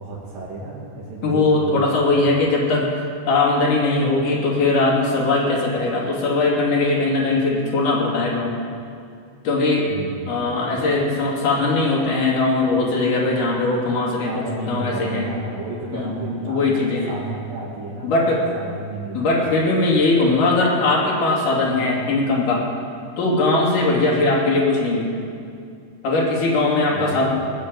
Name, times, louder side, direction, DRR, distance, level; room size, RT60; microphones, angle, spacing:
voice 1, 0.0-2.1 9.9-10.4 14.3-18.2 18.5-19.5 26.9-27.3, right 2 dB, 70° right, -7 dB, 3.6 m, -32 dB
voice 2, 1.2-2.9 3.3-8.5 9.4-9.9 10.3-15.3 15.9-17.1 18.0-18.4 19.1-22.7 23.2-25.1 26.0-27.3, left 2 dB, 60° left, -4 dB, 4.2 m, -20 dB
20.0 x 6.8 x 8.9 m, 2.3 s
omnidirectional pair, 4.1 m